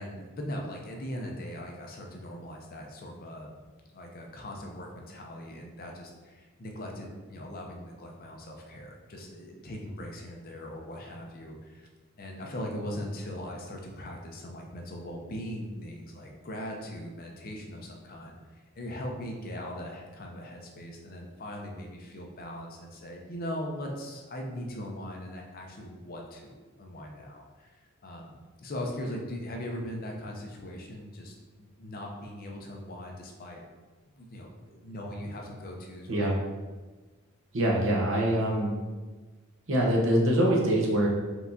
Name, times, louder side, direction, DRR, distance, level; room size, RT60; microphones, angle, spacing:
voice 1, 0.0-3.5 3.9-11.9 12.2-33.6 34.1-36.3, equal, 45° left, 1 dB, 0.6 m, -40 dB
voice 2, 37.5-38.7 39.7-41.1, right 1 dB, 65° right, -2 dB, 0.9 m, -24 dB
4.5 x 3.4 x 2.7 m, 1.3 s
head